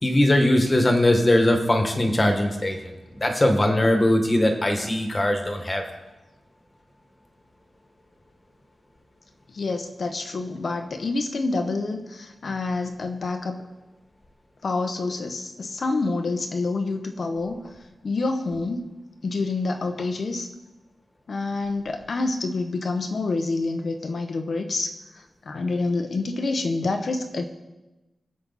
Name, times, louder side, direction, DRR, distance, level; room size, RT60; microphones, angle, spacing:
voice 1, 0.0-2.9 3.2-5.8, left 1 dB, 20° left, 3 dB, 1.7 m, -20 dB
voice 2, 9.5-13.6 14.6-17.6 18.0-18.9 19.2-20.5 21.3-27.4, left 3 dB, 50° left, 5 dB, 1.0 m, -27 dB
22.0 x 7.6 x 4.2 m, 1.1 s
wide cardioid pair, 145°, 0 cm